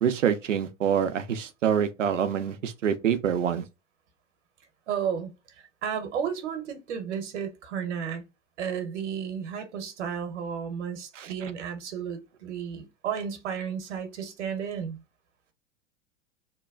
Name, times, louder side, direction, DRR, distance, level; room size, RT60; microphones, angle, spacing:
voice 1, 0.0-3.6 11.2-11.3, right 8 dB, 85° right, 0.6 m, -26 dB
voice 2, 4.9-5.3 5.6-8.2 8.6-15.0, right 7 dB, 65° right, 1.0 m, -33 dB
2.9 x 2.2 x 2.3 m
hypercardioid pair, 95°, 37 cm